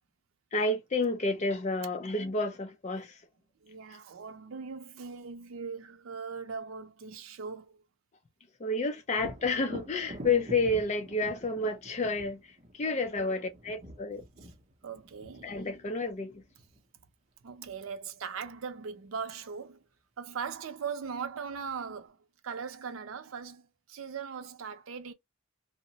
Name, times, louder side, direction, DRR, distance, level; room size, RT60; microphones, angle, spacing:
voice 1, 0.5-3.1 8.6-12.4 12.8-14.2 15.4-16.3, left 2 dB, 35° left, 0.4 m, -30 dB
voice 2, 3.6-7.8 12.8-13.0 14.4-14.5 14.8-15.6 17.4-19.8 20.2-22.2 22.4-25.1, right 6 dB, 80° right, 0.5 m, -40 dB
Thunder, 9.1-16.8 20.4-20.5 21.0-21.9, right 1 dB, 35° right, 0.6 m, -47 dB
2.7 x 2.0 x 2.7 m
head